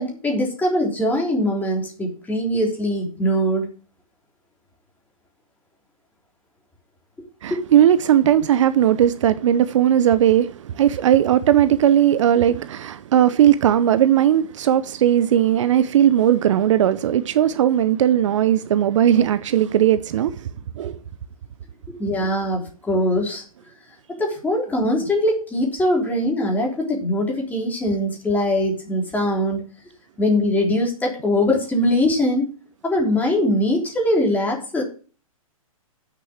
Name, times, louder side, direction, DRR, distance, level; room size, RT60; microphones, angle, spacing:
voice 1, 0.0-3.7 7.5-7.6 21.9-23.4 24.2-29.6 30.2-32.5 32.8-34.8, left 1 dB, 10° left, 3.5 m, -22 dB
voice 2, 7.4-20.4 20.8-21.0, right 10 dB, 55° right, 0.7 m, -17 dB
8.5 x 6.9 x 7.2 m
hypercardioid pair, 130°, 18 cm